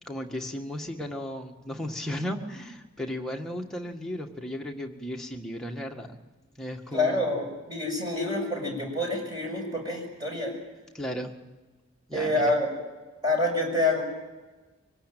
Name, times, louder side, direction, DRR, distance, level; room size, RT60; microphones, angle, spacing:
voice 1, 0.1-6.2 6.6-7.3 10.9-11.3 12.1-12.6, equal, ahead, 0 dB, 1.8 m, -35 dB
voice 2, 6.9-10.5 12.1-12.7 13.2-14.0, left 2 dB, 20° right, 1 dB, 6.4 m, -27 dB
24.0 x 18.5 x 9.2 m, 1.2 s
head